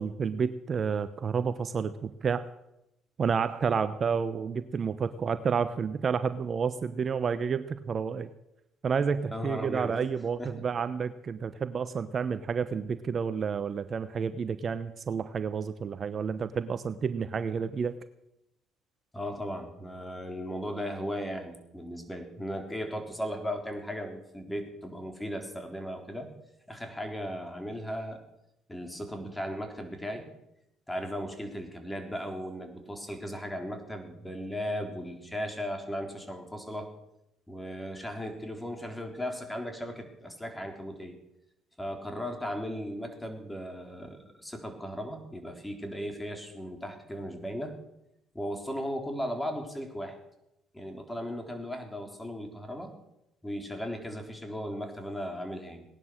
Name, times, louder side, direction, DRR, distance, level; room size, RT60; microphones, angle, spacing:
voice 1, 0.0-2.4 3.2-8.3 8.8-17.9, right 6 dB, 45° right, 13 dB, 0.8 m, -30 dB
voice 2, 9.3-9.9 10.4-10.7 19.1-26.3 26.7-28.2 28.7-30.3 30.9-36.9 37.5-41.2 41.8-47.8 48.3-50.2 50.7-52.9 53.4-55.9, equal, 10° left, 5 dB, 3.9 m, -36 dB
18.5 x 11.0 x 6.5 m, 0.86 s
supercardioid pair, 65°, 0 cm